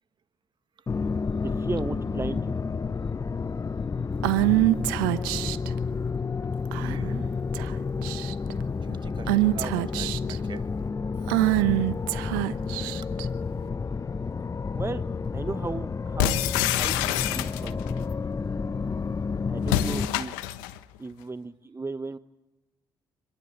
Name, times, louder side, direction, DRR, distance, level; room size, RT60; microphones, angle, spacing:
sound 1, 0.9-20.1, left 5 dB, 30° left, 0.9 m, -30 dB
voice 1, 1.3-2.6 14.7-15.0 15.3-16.4 16.7-18.0 19.5-20.6 21.0-22.2, right 3 dB, 25° right, 12 dB, 0.9 m, -35 dB
Female speech woman speaking / Whispering, 4.2-5.7 6.7-7.1 7.5-7.7 8.0-8.5 9.3-10.4 11.3-13.2, right 16 dB, 85° right, 1.0 m, -24 dB
voice 2, 6.8-7.3 8.8-10.7, right 6 dB, 45° right, 11 dB, 1.9 m, -41 dB
sound 2, 16.2-17.9 19.6-20.8, left 13 dB, 85° left, 1.1 m, -27 dB
26.5 x 21.5 x 8.8 m, 0.98 s
hypercardioid pair, 50°, 11 cm